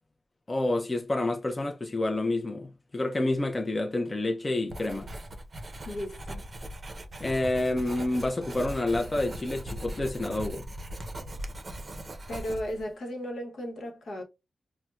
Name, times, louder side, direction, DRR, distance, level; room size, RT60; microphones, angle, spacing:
voice 1, 0.5-5.1 7.2-10.6, left 2 dB, 25° left, 0.5 m, -28 dB
Writing, 4.7-12.9, right 1 dB, 40° right, 0.6 m, -39 dB
voice 2, 5.8-6.5 12.3-14.2, equal, 75° left, 0.9 m, -35 dB
4.2 x 2.0 x 2.3 m
wide cardioid pair, 105°, 0 cm